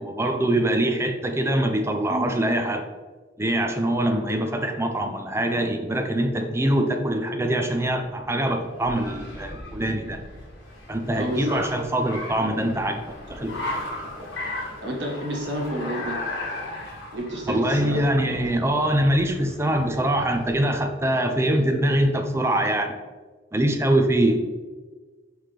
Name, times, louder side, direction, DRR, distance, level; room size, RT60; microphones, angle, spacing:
voice 1, 0.0-2.9 3.4-10.2 10.9-13.0 13.3-13.8 17.5-22.9 23.5-24.4, right 1 dB, 15° right, 4 dB, 0.6 m, -23 dB
Car, 7.9-20.7, left 2 dB, 90° left, 1.6 m, -37 dB
voice 2, 11.2-11.7 14.8-16.2 17.1-18.0 18.3-18.4, equal, 70° right, -1 dB, 1.6 m, -30 dB
5.8 x 4.8 x 3.4 m, 1.3 s
head